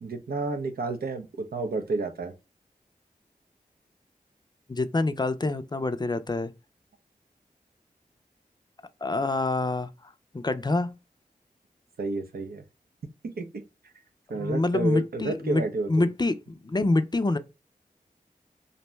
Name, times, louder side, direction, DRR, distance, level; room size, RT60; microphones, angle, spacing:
voice 1, 0.0-2.3 12.0-12.6 13.2-13.6 14.3-16.1, right 3 dB, 80° right, 0.5 m, -31 dB
voice 2, 4.7-6.5 9.0-9.9 10.3-10.9 14.3-15.6 15.9-17.4, left 2 dB, 30° left, 0.4 m, -26 dB
2.6 x 2.2 x 3.0 m
cardioid pair, 40°, 15 cm